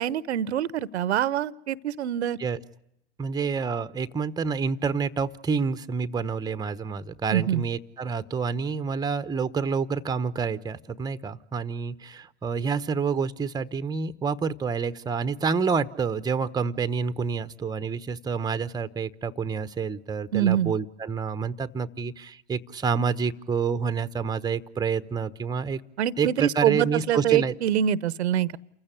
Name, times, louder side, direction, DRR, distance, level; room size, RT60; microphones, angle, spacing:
voice 1, 0.0-2.4 7.3-7.6 20.3-20.7 26.0-28.6, right 10 dB, 75° right, 19 dB, 0.9 m, -25 dB
voice 2, 3.2-25.8 26.2-27.5, right 5 dB, 10° right, 12 dB, 0.9 m, -28 dB
29.0 x 15.5 x 9.9 m, 0.81 s
hypercardioid pair, 95°, 33 cm